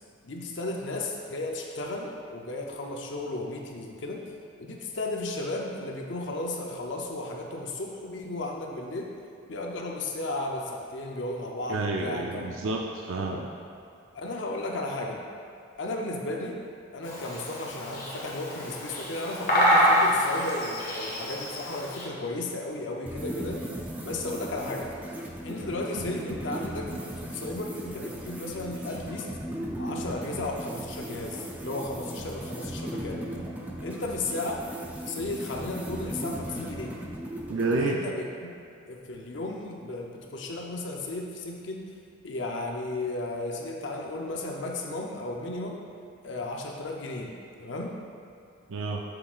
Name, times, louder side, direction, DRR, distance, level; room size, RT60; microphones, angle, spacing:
voice 1, 0.2-4.2 4.6-9.1 9.5-12.5 13.2-13.4 14.1-15.2 15.8-16.6 16.9-23.6 24.0-24.9 25.4-26.9 27.2-29.3 29.8-33.2 33.8-34.6 35.1-37.0 37.8-38.2 38.9-41.8 42.2-45.8 46.2-47.3 47.6-47.9, left 2 dB, 60° left, 0 dB, 0.6 m, -34 dB
voice 2, 11.7-13.4 25.9-26.1 37.5-38.0 48.7-49.0, right 3 dB, 70° right, 0 dB, 0.5 m, -29 dB
Bird vocalization bird call bird song, 17.0-22.0, equal, 45° left, 1.4 m, -26 dB
sound 1, 23.1-37.8, right 1 dB, 10° right, 0.5 m, -37 dB
7.3 x 6.8 x 2.4 m, 2.5 s
head